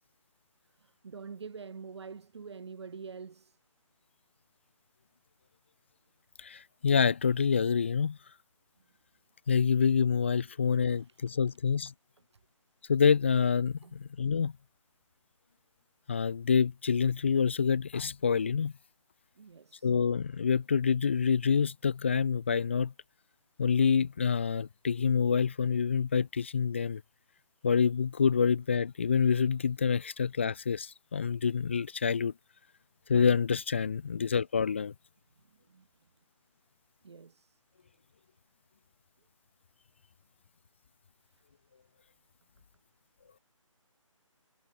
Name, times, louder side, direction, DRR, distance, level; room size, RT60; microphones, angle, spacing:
voice 1, 0.7-3.6 10.5-11.2 13.8-14.0 19.4-19.9 35.5-35.9 37.0-37.6 41.2-41.4, right 5 dB, 55° right, 2.9 m, -47 dB
voice 2, 6.4-8.2 9.5-11.9 12.9-14.5 16.1-18.7 19.8-22.9 23.6-27.0 27.6-32.3 33.1-34.9, left 6 dB, 20° left, 0.4 m, -27 dB
figure-of-eight pair, 160°, 17 cm